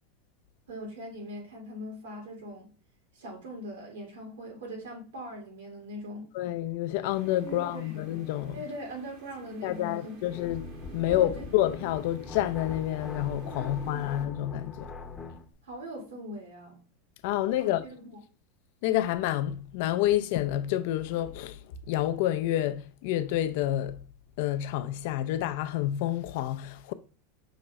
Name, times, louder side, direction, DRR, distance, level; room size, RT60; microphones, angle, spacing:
voice 1, 0.7-2.7 3.1-6.3 7.4-8.0 8.5-10.2 11.1-11.5 13.6-14.1 15.6-16.8 17.6-18.1, equal, 85° right, 1.9 m, -41 dB
voice 2, 6.3-8.6 9.6-14.9 17.2-17.8 18.8-21.6 21.9-24.0 24.4-26.9, left 13 dB, 65° left, 0.4 m, -29 dB
sound 1, 7.0-14.3, right 6 dB, 65° right, 1.1 m, -52 dB
sound 2, 10.2-15.5, left 4 dB, 15° left, 0.7 m, -41 dB
5.7 x 2.5 x 3.0 m
hypercardioid pair, 105°, 0 cm